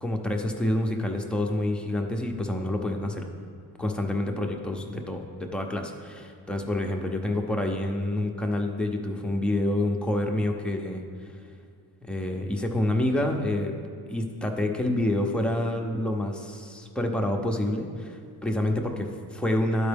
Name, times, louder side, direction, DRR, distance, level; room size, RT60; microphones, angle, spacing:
voice 1, 0.0-3.2 3.8-11.0 12.0-13.8 14.1-19.9, left 1 dB, 5° left, 1 dB, 0.6 m, -28 dB
11.5 x 4.5 x 3.4 m, 2.2 s
cardioid pair, 120°, 39 cm